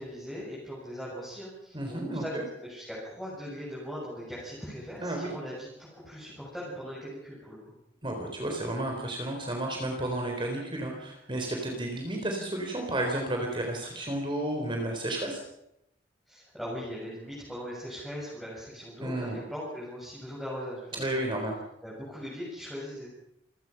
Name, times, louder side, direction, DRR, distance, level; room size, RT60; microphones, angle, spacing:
voice 1, 0.0-2.3 2.6-7.8 16.3-21.2 21.8-23.1, equal, ahead, -7 dB, 7.4 m, -40 dB
voice 2, 1.7-2.4 5.0-5.3 8.0-15.4 19.0-19.4 20.9-21.6, right 1 dB, 25° right, 2 dB, 3.7 m, -32 dB
27.5 x 18.0 x 5.8 m, 0.82 s
head